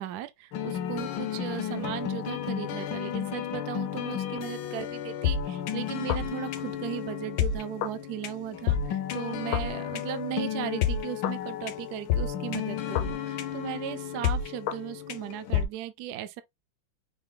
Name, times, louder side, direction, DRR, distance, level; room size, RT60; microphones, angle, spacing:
voice 1, 0.0-16.4, right 12 dB, 70° right, 1.0 m, -37 dB
sound 1, 0.5-15.6, left 9 dB, 75° left, 1.4 m, -31 dB
5.5 x 3.8 x 2.3 m
omnidirectional pair, 2.1 m